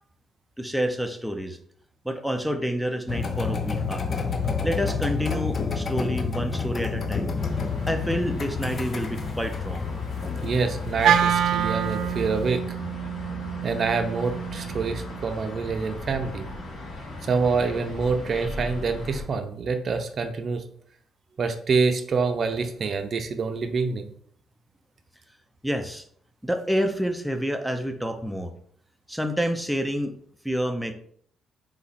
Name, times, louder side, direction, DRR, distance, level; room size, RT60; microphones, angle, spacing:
voice 1, 0.6-1.6 2.0-4.0 4.6-7.3 7.9-9.9 25.6-26.0 26.4-28.5 29.1-30.1 30.4-30.9, equal, ahead, 6 dB, 0.6 m, -28 dB
sound 1, 3.1-12.5, left 5 dB, 45° left, 0.6 m, -29 dB
sound 2, 7.3-19.2, left 1 dB, 60° left, 1.7 m, -38 dB
voice 2, 10.4-12.6 13.6-16.5 17.2-20.6 21.4-24.1, right 4 dB, 50° right, 7 dB, 0.6 m, -26 dB
Wind instrument woodwind instrument, 11.0-15.3, right 9 dB, 80° right, 0.3 m, -26 dB
4.2 x 3.0 x 4.1 m, 0.63 s
cardioid pair, 90°, 0 cm